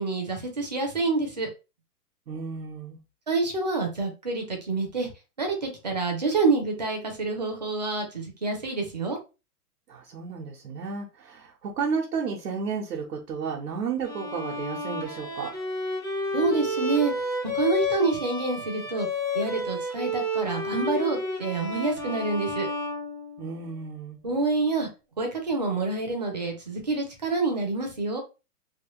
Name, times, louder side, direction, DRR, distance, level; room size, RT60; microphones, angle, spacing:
voice 1, 0.0-1.5 3.3-5.1 5.4-9.2 16.3-17.1 17.5-19.1 19.3-22.7 24.2-24.9 25.2-28.2, right 3 dB, 30° right, 3 dB, 0.5 m, -27 dB
voice 2, 2.3-3.0 9.9-15.5 23.4-24.2, right 5 dB, 80° right, -1 dB, 1.1 m, -32 dB
Bowed string instrument, 14.0-23.8, left 1 dB, 15° left, 0.5 m, -31 dB
3.1 x 2.5 x 3.0 m, 0.29 s
hypercardioid pair, 180°, 47 cm